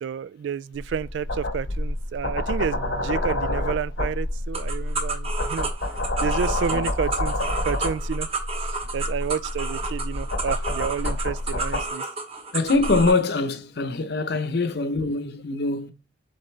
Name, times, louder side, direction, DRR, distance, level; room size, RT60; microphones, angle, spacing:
voice 1, 0.0-5.7 6.2-8.3 8.6-12.0, right 7 dB, 75° right, 0.3 m, -30 dB
sound 1, 0.7-11.9 12.7-13.1, left 1 dB, 90° left, 1.1 m, -28 dB
sound 2, 4.5-13.2, right 4 dB, 35° right, 1.2 m, -32 dB
voice 2, 12.5-15.9, left 3 dB, 65° left, 0.8 m, -23 dB
7.3 x 3.9 x 3.3 m
head